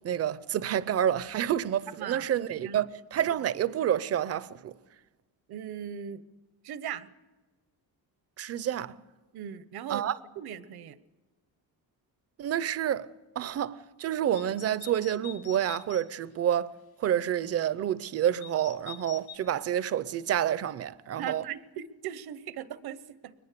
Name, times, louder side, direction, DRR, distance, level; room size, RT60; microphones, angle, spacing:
voice 1, 0.0-4.7 8.4-8.9 9.9-10.2 12.4-13.1 13.4-16.7 17.0-21.4, right 10 dB, 40° right, 0.6 m, -29 dB
voice 2, 2.0-2.8 5.5-6.2 6.6-7.1 9.3-10.1 10.4-11.0 21.2-23.3, right 9 dB, 80° right, 1.0 m, -39 dB
sound 1, 14.3-16.0 18.4-19.3, left 9 dB, 80° left, 1.5 m, -45 dB
22.5 x 20.0 x 6.8 m
cardioid pair, 175°, 37 cm